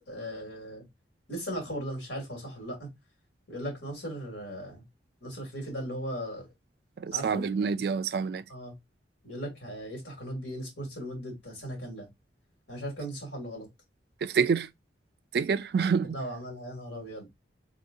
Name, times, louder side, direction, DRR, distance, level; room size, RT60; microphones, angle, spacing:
voice 1, 0.1-0.8 1.3-2.9 3.5-4.8 5.2-6.5 7.1-7.5 8.5-8.7 9.2-12.1 12.7-13.7 16.1-17.3, equal, 80° left, 2.4 m, -37 dB
voice 2, 7.0-8.4 14.2-14.7 15.3-16.2, right 6 dB, 55° right, 0.3 m, -27 dB
3.6 x 2.7 x 3.7 m
head